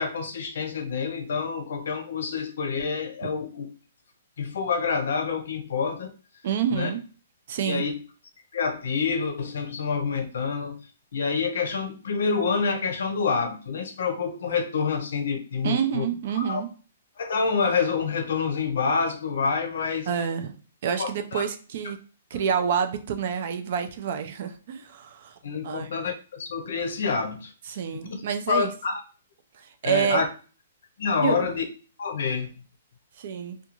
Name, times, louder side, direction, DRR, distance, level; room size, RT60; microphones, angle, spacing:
voice 1, 0.0-3.7 4.4-6.1 6.7-6.9 7.7-8.0 8.5-10.8 11.1-16.1 16.3-16.6 17.2-20.1 21.0-21.5 25.4-28.2 28.5-29.0 29.8-30.3 31.0-31.6 32.0-32.5, left 5 dB, 60° left, 6 dB, 0.6 m, -27 dB
voice 2, 6.4-7.0 7.5-7.8 15.6-16.7 20.1-20.5 20.8-22.0 22.3-25.3 25.6-25.9 27.7-28.7 29.6-30.2 31.2-31.5 33.2-33.6, right 8 dB, 40° right, 8 dB, 0.3 m, -28 dB
2.4 x 2.2 x 3.0 m, 0.36 s
hypercardioid pair, 175°, 0 cm